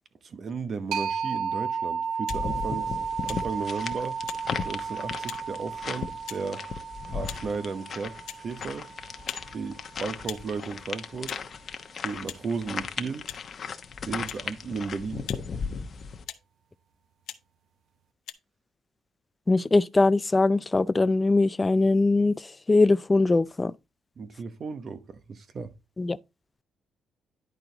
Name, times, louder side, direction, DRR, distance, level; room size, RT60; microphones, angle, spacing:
voice 1, 0.2-3.0 3.2-4.2 4.6-6.6 7.1-8.9 9.5-11.3 12.0-13.2 14.0-15.2 24.2-25.7, right 5 dB, 50° right, 1.0 m, -34 dB
sound 1, 0.9-10.3, right 6 dB, 85° right, 0.8 m, -34 dB
sound 2, 2.2-2.4 3.2-3.4 4.3-4.4 5.3-5.4 6.3-6.4 7.2-7.4 8.2-8.4 9.2-9.5 10.2-10.4 11.2-11.4 12.3-12.4 13.2-13.4 14.3-14.4 15.2-15.4 16.2-16.5 17.2-17.4 18.2-18.3, left 12 dB, 85° left, 0.7 m, -40 dB
sound 3, 2.3-16.2, left 6 dB, 50° left, 0.9 m, -36 dB
voice 2, 19.5-22.4 22.7-23.7 26.0-26.2, left 3 dB, 20° left, 0.4 m, -21 dB
10.5 x 4.4 x 3.9 m
cardioid pair, 90°, 0 cm